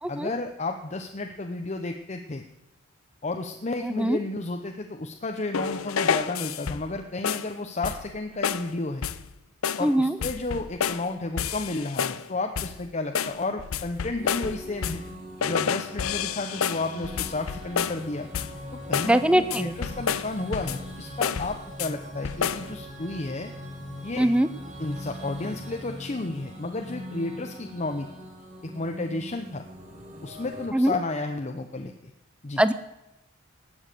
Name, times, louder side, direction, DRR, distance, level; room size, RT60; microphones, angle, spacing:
voice 1, 0.1-2.4 3.2-9.1 9.8-15.0 15.4-18.3 18.7-23.5 24.0-24.3 24.8-28.1 28.6-29.6 30.2-32.1 32.4-32.6, left 2 dB, 35° left, 4 dB, 0.7 m, -32 dB
voice 2, 3.8-4.2 9.8-10.2 19.0-19.7 24.2-24.5 30.7-30.9 32.6-32.7, right 1 dB, 5° right, 13 dB, 0.5 m, -22 dB
sound 1, 5.5-7.0 7.2-7.5 7.8-8.2 8.4-8.7 9.0-9.3 9.6-9.9 10.2-11.1 11.4-12.3 12.6-12.8 13.2-15.1 15.4-18.1 18.3-18.6 18.9-19.2 19.5-20.9 21.2-21.9 22.2-22.7, left 7 dB, 85° left, 0.6 m, -29 dB
sound 2, 14.1-30.7, equal, 35° right, 2.5 m, -41 dB
18.5 x 7.1 x 6.7 m, 0.96 s
head